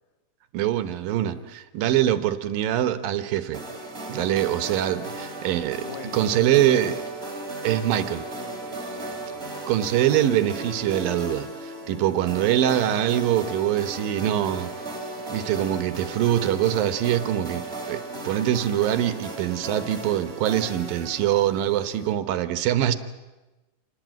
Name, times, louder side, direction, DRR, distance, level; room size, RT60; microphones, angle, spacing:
voice 1, 0.5-3.6 4.1-5.8 6.1-7.0 7.6-8.2 9.7-14.7 15.3-23.0, right 12 dB, 75° right, 12 dB, 2.6 m, -24 dB
sound 1, 3.5-22.1, right 2 dB, 15° right, 3.2 m, -36 dB
voice 2, 4.1-4.5 5.8-7.0 8.4-9.7 11.8-12.2 21.7-21.8, left 8 dB, 80° left, 8 dB, 3.6 m, -44 dB
26.5 x 18.5 x 9.2 m, 1.1 s
omnidirectional pair, 4.3 m